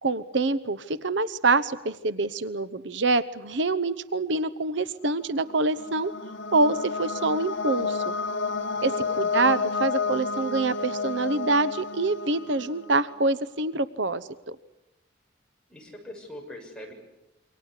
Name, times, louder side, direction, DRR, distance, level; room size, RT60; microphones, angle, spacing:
voice 1, 0.0-6.1 6.5-8.1 8.8-8.9 9.2-14.6, right 3 dB, 65° right, 15 dB, 0.9 m, -26 dB
sound 1, 5.4-13.1, left 4 dB, 75° left, 1.7 m, -30 dB
voice 2, 8.8-9.3 15.7-16.9, left 1 dB, 5° left, -1 dB, 7.1 m, -42 dB
28.0 x 24.5 x 8.3 m, 0.91 s
head